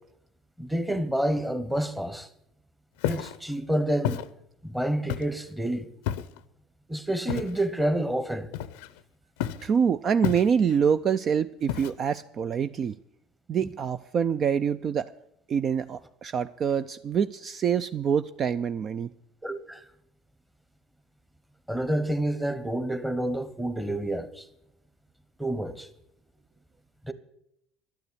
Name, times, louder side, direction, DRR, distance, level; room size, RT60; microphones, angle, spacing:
voice 1, 0.6-2.3 3.1-4.2 4.6-5.9 6.9-8.5 13.6-13.7 19.4-19.8 21.7-24.5 25.4-25.9 27.0-27.1, right 1 dB, 5° right, 1.1 m, -28 dB
Walk footsteps, 3.0-3.4 4.0-4.3 5.1-5.4 6.1-6.4 7.3-7.6 8.5-9.0 9.4-9.7 10.2-10.8 11.7-12.2, left 11 dB, 90° left, 0.6 m, -31 dB
voice 2, 9.6-13.0 13.5-15.1 15.5-19.1, right 7 dB, 40° right, 0.4 m, -26 dB
11.5 x 7.1 x 9.7 m
supercardioid pair, 105°, 0 cm